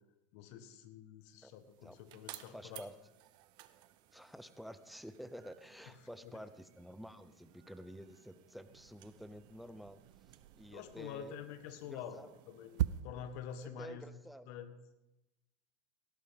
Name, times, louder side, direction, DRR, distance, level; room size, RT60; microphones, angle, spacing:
voice 1, 0.3-2.8 6.2-6.3 10.7-14.0 14.5-14.7, left 8 dB, 65° left, 10 dB, 1.4 m, -47 dB
sound 1, 1.3-13.0, right 15 dB, 55° right, 0.8 m, -59 dB
voice 2, 2.5-3.0 4.1-11.3 11.8-12.3 13.6-14.5, equal, ahead, 13 dB, 0.7 m, -50 dB
sound 2, 8.6-13.7, right 13 dB, 80° right, 0.4 m, -43 dB
17.0 x 11.5 x 3.6 m, 0.98 s
supercardioid pair, 115°, 9 cm